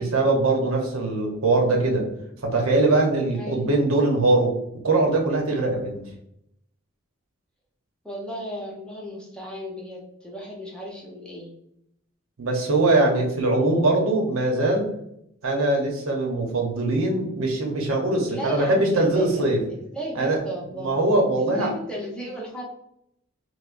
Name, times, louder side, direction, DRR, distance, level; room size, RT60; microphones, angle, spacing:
voice 1, 0.0-2.0 2.4-4.5 4.8-6.0 12.4-14.9 15.4-19.6 20.1-20.4 20.8-21.7, right 2 dB, 90° right, 1 dB, 0.8 m, -22 dB
voice 2, 3.3-3.7 8.0-11.5 18.3-19.4 19.7-21.0 21.4-22.6, equal, 5° left, -4 dB, 0.7 m, -35 dB
4.8 x 2.1 x 2.5 m, 0.76 s
head